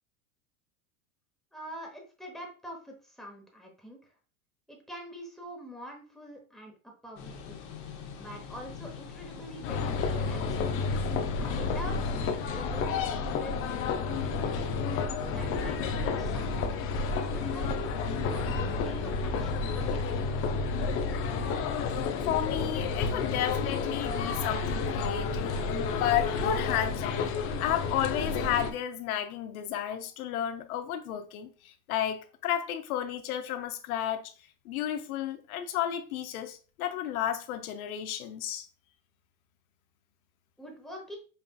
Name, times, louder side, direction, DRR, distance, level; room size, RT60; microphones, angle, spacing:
voice 1, 1.5-4.1 4.7-7.6 8.2-10.8 11.4-14.7 15.2-16.6 17.3-17.9 18.3-20.0 40.6-41.2, equal, ahead, 1.0 m, -45 dB
sound 1, 7.2-12.6, left 6 dB, 50° left, 1.0 m, -44 dB
sound 2, 9.6-28.7, left 4 dB, 30° left, 0.5 m, -30 dB
voice 2, 22.2-27.2 27.6-34.3 34.6-38.6, left 11 dB, 80° left, 0.7 m, -32 dB
5.5 x 2.4 x 2.2 m
supercardioid pair, 115°, 43 cm